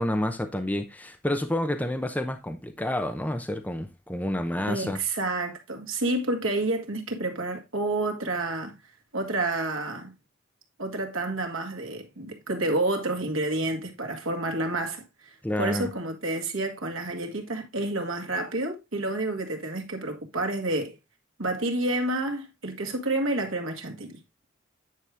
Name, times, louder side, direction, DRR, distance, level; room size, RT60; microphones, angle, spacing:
voice 1, 0.0-5.0 15.4-15.9, left 1 dB, 10° left, 0.7 m, -29 dB
voice 2, 4.7-8.8 9.1-10.1 10.8-15.0 15.6-21.0 21.4-24.4, right 2 dB, 85° right, 1.9 m, -29 dB
9.4 x 4.8 x 3.5 m
head